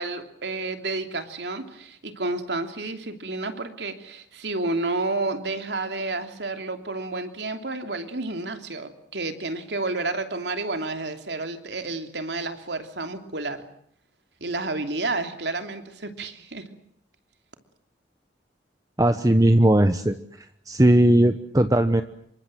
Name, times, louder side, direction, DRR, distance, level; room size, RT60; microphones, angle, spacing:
voice 1, 0.0-13.6 14.4-16.7, right 2 dB, 75° right, 7 dB, 3.0 m, -30 dB
voice 2, 19.0-20.1 20.7-22.0, right 1 dB, 20° right, 9 dB, 1.0 m, -18 dB
27.5 x 24.0 x 7.7 m, 0.68 s
head